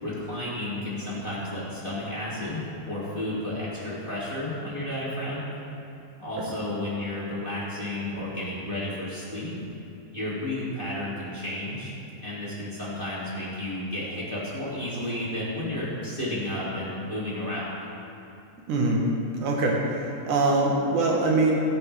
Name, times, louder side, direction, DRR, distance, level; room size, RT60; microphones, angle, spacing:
voice 1, 0.0-5.4 6.2-9.5 10.1-11.9 12.2-17.7, left 1 dB, 30° left, -9 dB, 0.9 m, -32 dB
voice 2, 18.7-19.0 19.4-21.6, right 2 dB, 80° right, -1 dB, 1.7 m, -23 dB
17.0 x 11.0 x 3.3 m, 2.9 s
omnidirectional pair, 5.3 m